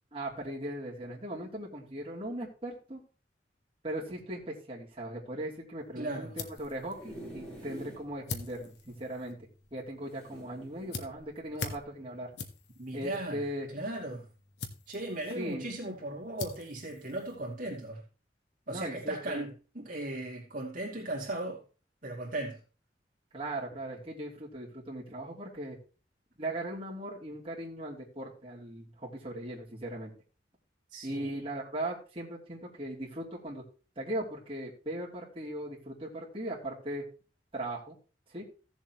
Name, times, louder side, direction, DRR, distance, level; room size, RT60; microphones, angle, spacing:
voice 1, 0.1-3.0 3.8-9.4 9.7-12.3 12.9-13.7 15.3-15.7 18.7-19.5 23.3-25.8 26.4-30.1 31.0-33.6 34.0-37.1 37.5-38.0 38.3-38.4, right 1 dB, 35° right, 2.9 m, -38 dB
sound 1, 5.8-17.9, left 4 dB, 75° left, 1.3 m, -46 dB
voice 2, 5.9-6.4 12.8-13.5 13.7-14.3 14.9-18.0 18.7-21.6 22.0-22.6 30.9-31.4, right 1 dB, 50° right, 2.6 m, -37 dB
sound 2, 6.6-8.1 8.6-8.7 8.9-9.0 10.1-11.0 11.7-11.9, equal, 5° left, 4.4 m, -47 dB
16.0 x 7.2 x 3.0 m
head